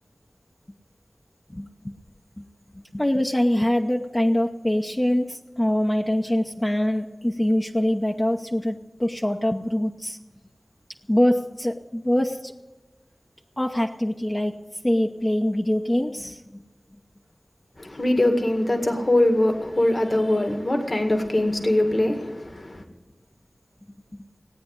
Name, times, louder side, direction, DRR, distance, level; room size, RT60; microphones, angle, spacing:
voice 1, 1.5-1.9 2.4-2.5 2.9-10.2 11.1-12.5 13.6-14.6 14.8-16.4, left 1 dB, 20° left, 0.8 m, -24 dB
voice 2, 17.8-22.8, left 1 dB, 50° left, 1.9 m, -22 dB
18.0 x 9.2 x 8.2 m
wide cardioid pair, 70°, 0 cm